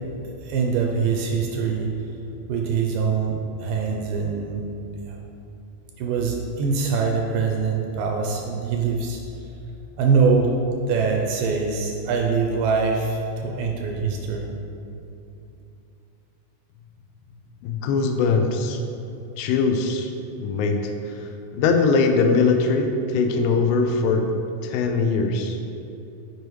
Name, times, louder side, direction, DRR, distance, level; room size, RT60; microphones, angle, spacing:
voice 1, 0.4-1.9 2.5-4.7 5.1-5.2 6.0-9.2 10.0-10.5 10.9-14.5, right 5 dB, 80° right, 0 dB, 2.1 m, -23 dB
voice 2, 17.6-18.8 19.4-20.1 20.4-21.2 21.5-24.3 24.6-25.6, left 4 dB, 85° left, 4 dB, 2.3 m, -21 dB
8.1 x 4.6 x 3.1 m, 2.8 s
omnidirectional pair, 4.2 m